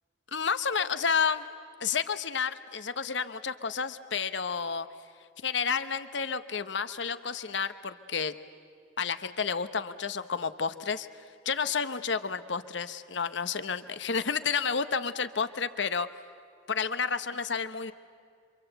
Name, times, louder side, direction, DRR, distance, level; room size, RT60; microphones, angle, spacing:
voice 1, 0.3-1.4 1.8-4.9 5.4-8.3 9.0-11.1 11.4-16.1 16.7-17.9, left 6 dB, 70° left, 12 dB, 1.0 m, -30 dB
27.5 x 25.0 x 8.0 m, 2.3 s
head